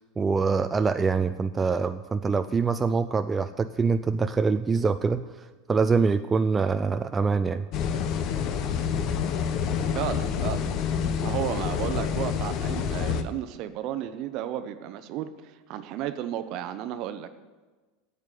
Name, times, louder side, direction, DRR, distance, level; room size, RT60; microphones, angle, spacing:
voice 1, 0.2-7.7, right 4 dB, 20° right, 10 dB, 0.4 m, -25 dB
sound 1, 7.7-13.2, left 7 dB, 50° left, 0.8 m, -28 dB
voice 2, 9.9-10.7 11.2-17.3, right 11 dB, 50° right, 11 dB, 0.7 m, -33 dB
8.9 x 8.1 x 8.4 m, 1.3 s
hypercardioid pair, 85°, 0 cm